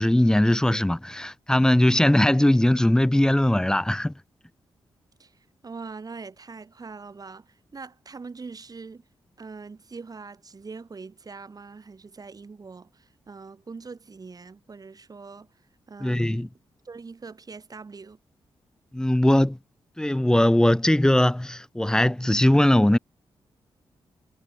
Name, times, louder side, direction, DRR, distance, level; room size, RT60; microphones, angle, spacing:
voice 1, 0.0-4.1 16.0-16.5 18.9-19.6 20.0-23.0, left 1 dB, 5° left, 0.6 m, -20 dB
voice 2, 5.2-9.1 9.4-15.5 15.9-16.5 16.8-18.2, right 4 dB, 40° right, 4.1 m, -42 dB
cardioid pair, 90°, 10 cm